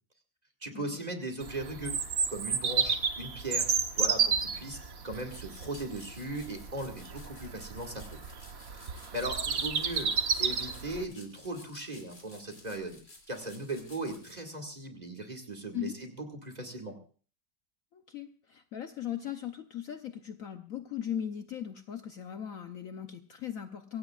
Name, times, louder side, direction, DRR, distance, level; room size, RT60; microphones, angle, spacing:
voice 1, 0.6-2.0 2.3-3.7 4.0-4.8 5.0-8.2 9.1-10.1 10.4-13.0 13.3-16.9, right 1 dB, 25° right, 3 dB, 2.1 m, -38 dB
Bird vocalization bird call bird song, 1.4-11.0, right 6 dB, 55° right, 1.5 m, -32 dB
sound 1, 5.1-14.3, left 2 dB, 45° left, 3.2 m, -55 dB
voice 2, 17.9-24.0, left 10 dB, 60° left, 7 dB, 1.1 m, -38 dB
24.0 x 16.5 x 2.4 m, 0.41 s
omnidirectional pair, 1.9 m